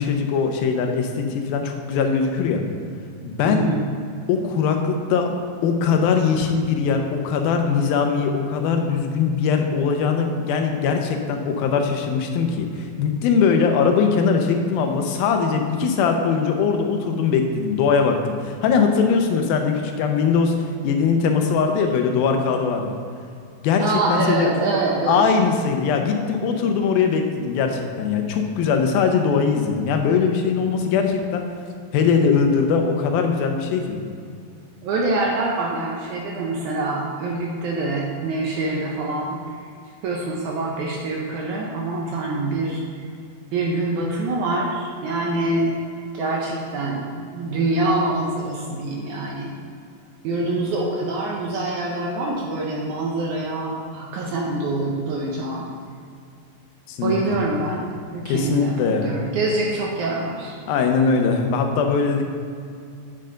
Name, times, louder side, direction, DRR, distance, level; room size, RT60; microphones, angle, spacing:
voice 1, 0.0-2.6 3.2-3.7 4.3-5.3 5.6-20.6 20.8-23.0 23.6-24.5 25.1-31.5 31.9-34.0 56.9-57.4 58.3-59.1 60.7-62.2, left 5 dB, 85° left, 4 dB, 2.6 m, -21 dB
voice 2, 3.5-3.9 23.8-25.3 34.8-39.4 40.0-43.0 43.5-45.8 46.1-49.6 50.2-55.7 57.0-60.6, right 2 dB, 75° right, -2 dB, 1.9 m, -25 dB
8.9 x 7.8 x 3.8 m, 2.3 s
omnidirectional pair, 4.2 m